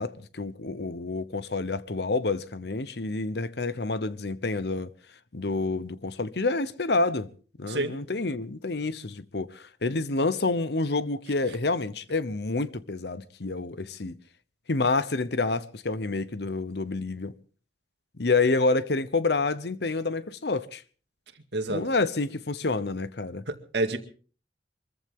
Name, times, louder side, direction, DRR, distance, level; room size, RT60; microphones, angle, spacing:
voice 1, 0.0-4.9 5.3-7.3 7.6-14.1 14.7-17.3 18.2-20.8 21.7-23.4, left 3 dB, 65° left, 0.9 m, -28 dB
voice 2, 21.5-21.9 23.5-24.0, right 2 dB, 70° right, 2.1 m, -28 dB
24.0 x 14.5 x 3.7 m
head